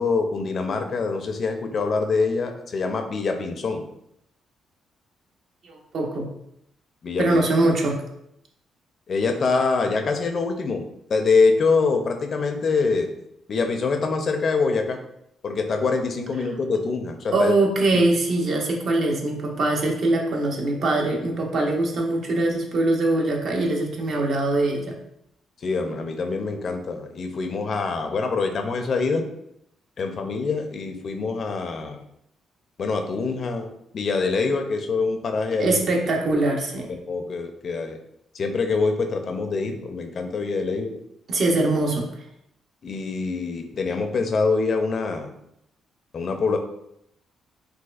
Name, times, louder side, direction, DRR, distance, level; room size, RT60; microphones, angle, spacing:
voice 1, 0.0-3.8 7.0-7.4 9.1-13.1 13.5-15.0 15.4-17.5 17.9-18.0 25.6-29.2 30.0-32.0 32.8-35.8 36.9-38.0 38.3-41.0 42.8-45.3 46.1-46.6, left 4 dB, 50° left, 6 dB, 0.4 m, -25 dB
voice 2, 5.6-6.3 7.2-8.0 17.3-25.0 35.6-36.9 41.3-42.2, right 2 dB, 60° right, 0 dB, 0.7 m, -22 dB
4.1 x 2.3 x 2.4 m, 0.76 s
cardioid pair, 90°, 0 cm